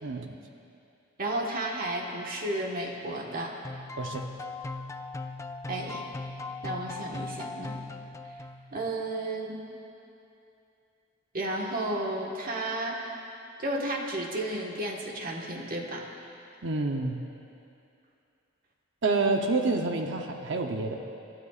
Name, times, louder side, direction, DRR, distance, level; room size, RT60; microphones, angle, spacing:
voice 1, 0.0-0.4 4.0-4.3 16.6-17.2 19.0-21.0, right 3 dB, 65° right, 3 dB, 0.8 m, -28 dB
voice 2, 1.2-3.6 5.7-6.1 6.6-7.8 8.3-8.4 8.7-9.6 11.3-13.1 13.6-16.0, right 1 dB, 45° right, -1 dB, 1.5 m, -32 dB
sound 1, 3.6-8.8, left 3 dB, 15° left, 0.4 m, -39 dB
27.0 x 12.5 x 2.5 m, 2.7 s
head